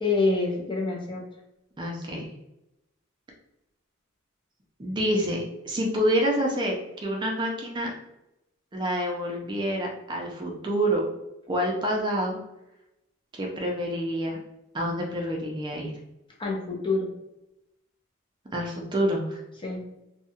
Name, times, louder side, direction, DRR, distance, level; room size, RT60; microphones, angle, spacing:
voice 1, 0.0-1.2 16.4-17.1 19.6-19.8, left 3 dB, 25° left, -1 dB, 0.6 m, -26 dB
voice 2, 1.8-2.3 4.8-7.9 8.7-11.0 11.5-12.4 13.3-14.4 14.7-15.9 18.5-19.4, equal, 20° right, -1 dB, 0.4 m, -27 dB
2.7 x 2.3 x 2.7 m, 0.91 s
head